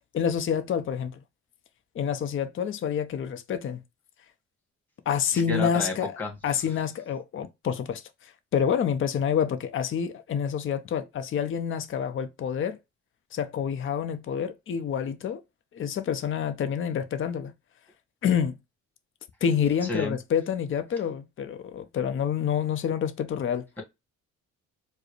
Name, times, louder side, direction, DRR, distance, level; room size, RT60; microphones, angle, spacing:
voice 1, 0.1-1.1 1.9-3.8 5.1-6.2 6.4-12.8 13.3-15.4 15.7-17.5 18.2-18.6 19.4-23.6, left 8 dB, 45° left, 0.6 m, -28 dB
voice 2, 5.5-6.8 19.8-20.2, left 2 dB, 5° left, 1.7 m, -32 dB
4.5 x 2.0 x 3.1 m
cardioid pair, 90°, 30 cm